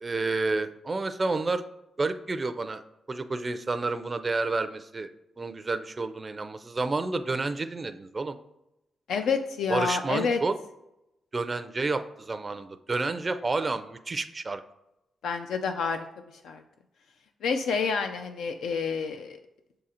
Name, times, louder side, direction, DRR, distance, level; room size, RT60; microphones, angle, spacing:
voice 1, 0.0-1.6 2.0-2.8 3.1-5.1 5.4-8.4 9.7-10.6 11.3-14.6, right 3 dB, 25° right, 9 dB, 0.4 m, -30 dB
voice 2, 9.1-10.4 15.2-16.0 16.4-16.6 17.4-19.4, left 5 dB, 85° left, 6 dB, 0.4 m, -28 dB
6.6 x 3.7 x 4.2 m, 0.89 s
cardioid pair, 135°, 0 cm